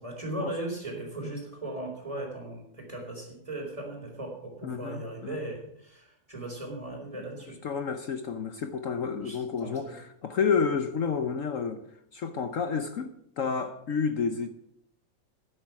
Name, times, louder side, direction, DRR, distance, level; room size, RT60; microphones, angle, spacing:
voice 1, 0.0-7.6 9.2-10.0, right 1 dB, 20° right, 4.1 m, -38 dB
voice 2, 4.6-5.4 7.6-11.8 12.1-14.5, left 6 dB, 60° left, 1.1 m, -30 dB
12.5 x 10.0 x 6.0 m
omnidirectional pair, 1.8 m